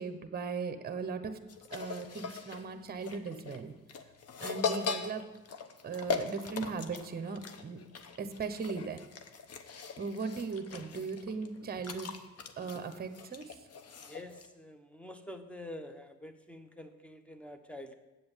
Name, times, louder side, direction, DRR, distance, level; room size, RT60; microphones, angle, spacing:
voice 1, 0.0-1.4 1.7-3.7 4.4-5.2 5.8-7.8 8.2-9.0 10.0-12.1 12.6-13.4, right 5 dB, 30° right, 8 dB, 1.0 m, -38 dB
sound 1, 1.5-14.5, left 5 dB, 55° left, 0.9 m, -40 dB
voice 2, 14.0-18.0, left 1 dB, 5° left, 8 dB, 1.0 m, -47 dB
8.1 x 7.7 x 7.3 m, 1.1 s
cardioid pair, 90°, 30 cm